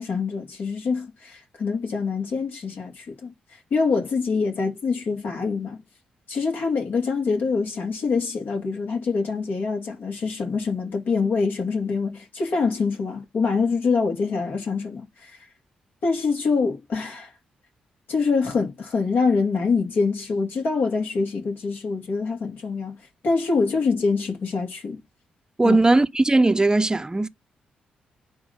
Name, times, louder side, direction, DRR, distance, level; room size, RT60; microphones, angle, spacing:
voice 1, 0.0-3.3 3.7-5.8 6.3-15.5 16.0-17.3 18.1-23.0 23.2-25.0 25.6-25.8, left 4 dB, 65° left, 2.7 m, -25 dB
voice 2, 25.6-27.3, right 2 dB, 20° right, 0.8 m, -18 dB
9.4 x 3.2 x 5.3 m
hypercardioid pair, 40°, 3 cm